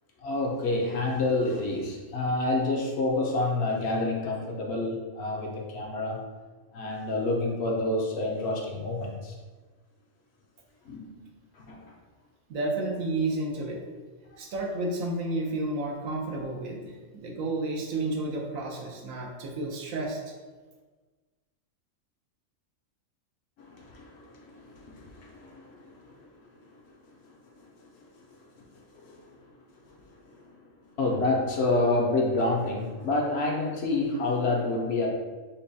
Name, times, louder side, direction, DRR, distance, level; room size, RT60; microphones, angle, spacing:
voice 1, 0.2-6.2 6.7-9.4 10.9-11.3 11.5-11.9 23.6-26.3 27.3-27.7 28.0-28.1 28.7-29.3 29.9-30.0 30.3-30.6 31.0-35.1, left 2 dB, 65° left, 0 dB, 0.7 m, -29 dB
voice 2, 12.5-13.8 14.4-20.2, right 2 dB, 90° right, 0 dB, 1.1 m, -31 dB
5.3 x 2.2 x 2.6 m, 1.3 s
omnidirectional pair, 1.3 m